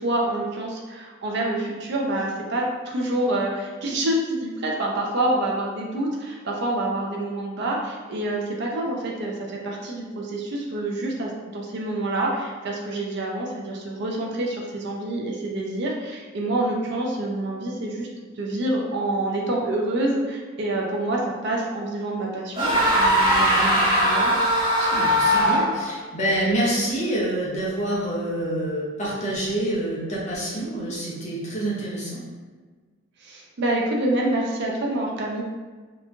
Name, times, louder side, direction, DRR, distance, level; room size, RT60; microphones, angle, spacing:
voice 1, 0.0-18.1 18.4-24.3 33.2-35.4, right 1 dB, 55° right, -1 dB, 0.4 m, -27 dB
sound 1, 22.5-25.9, equal, 25° right, 0.9 m, -20 dB
voice 2, 24.8-32.2, right 1 dB, 35° left, -6 dB, 0.7 m, -27 dB
2.9 x 2.2 x 2.4 m, 1.4 s
head